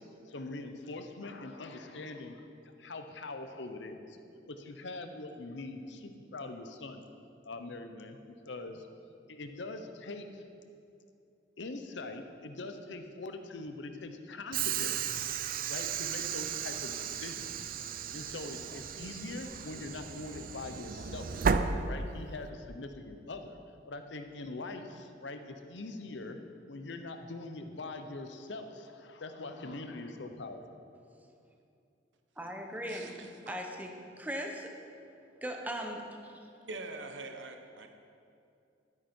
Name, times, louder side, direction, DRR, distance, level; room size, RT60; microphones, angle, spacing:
voice 1, 0.0-2.5 2.8-4.2 4.5-7.0 7.4-8.9 9.3-10.5 11.6-17.7 18.1-21.5 21.8-23.6 23.9-26.4 26.7-30.6, left 2 dB, 70° left, 7 dB, 0.8 m, -43 dB
Train / Sliding door, 14.5-22.5, right 6 dB, 50° right, 0.5 m, -34 dB
voice 2, 32.4-33.1 33.5-34.7 35.4-36.0, equal, 10° right, 2 dB, 1.0 m, -38 dB
voice 3, 32.9-33.6 36.7-37.9, right 3 dB, 80° right, 5 dB, 1.0 m, -44 dB
12.0 x 9.3 x 4.5 m, 2.6 s
head